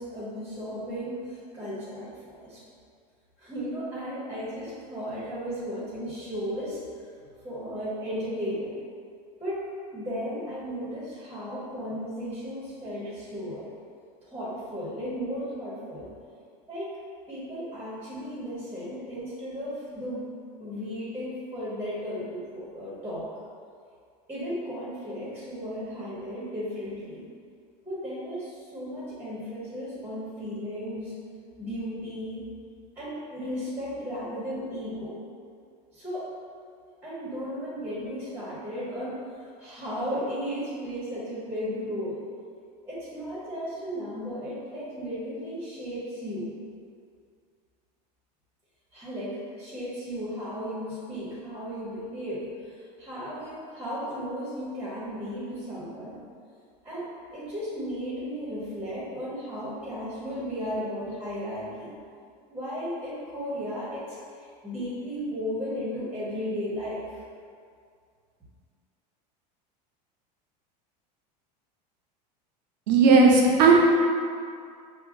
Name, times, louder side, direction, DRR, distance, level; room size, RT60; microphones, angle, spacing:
voice 1, 0.0-2.1 2.4-2.6 3.4-6.8 7.4-8.8 9.4-9.7 9.9-13.7 14.3-16.1 16.7-17.0 17.3-20.3 20.6-23.3 24.3-27.3 27.8-31.1 31.6-32.5 33.0-35.2 35.9-36.3 37.0-42.2 42.9-46.5 48.9-52.5 53.0-56.2 56.8-61.9 62.5-64.2 64.6-67.2, equal, 10° right, -8 dB, 1.0 m, -35 dB
voice 2, 72.9-73.8, right 4 dB, 85° right, 0 dB, 0.6 m, -16 dB
4.6 x 2.1 x 2.6 m, 2.2 s
supercardioid pair, 110°, 21 cm